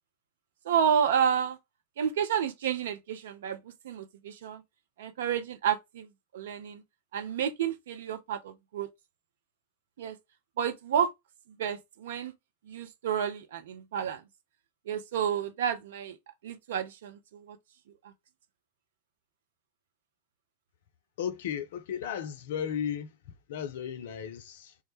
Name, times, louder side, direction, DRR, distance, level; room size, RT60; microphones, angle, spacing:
voice 1, 0.7-1.6 2.0-3.6 3.8-4.6 5.0-6.8 7.1-8.9 10.0-10.2 10.6-11.1 11.6-12.3 12.7-14.2 14.9-16.2 16.4-17.6, right 8 dB, 60° right, 0.4 m, -30 dB
voice 2, 21.2-24.8, left 8 dB, 55° left, 0.3 m, -35 dB
3.4 x 2.1 x 3.1 m
figure-of-eight pair, 90°, 0 cm